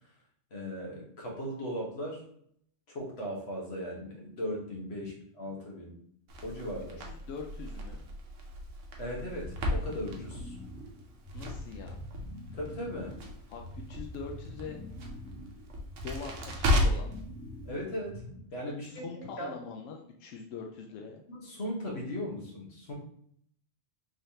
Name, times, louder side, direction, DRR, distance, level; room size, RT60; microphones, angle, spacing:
voice 1, 0.5-2.2 2.9-6.0 6.4-7.0 9.0-10.6 12.5-13.1 17.6-18.2 18.5-19.5 21.3-22.9, equal, 55° left, -2 dB, 1.3 m, -38 dB
Crackle, 6.3-17.2, left 1 dB, 75° right, 1.1 m, -35 dB
voice 2, 7.1-8.0 11.3-12.0 13.5-14.8 16.0-17.1 18.7-21.2, left 5 dB, 90° left, 2 dB, 0.9 m, -43 dB
sound 1, 9.4-18.6, equal, 5° left, 0.6 m, -45 dB
3.9 x 3.2 x 2.8 m, 0.67 s
omnidirectional pair, 1.3 m